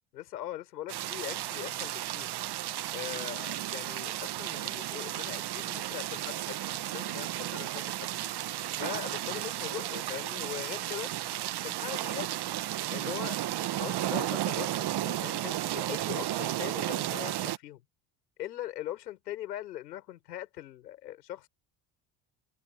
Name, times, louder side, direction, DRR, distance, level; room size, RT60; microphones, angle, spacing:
voice 1, 0.1-2.3 2.9-8.4 8.8-11.1 11.6-12.3 12.9-13.4 13.8-17.8 18.4-21.5, left 13 dB, 90° left, 5.9 m, -41 dB
sound 1, 0.9-17.6, right 13 dB, 55° right, 1.4 m, -33 dB
hypercardioid pair, 55°, 48 cm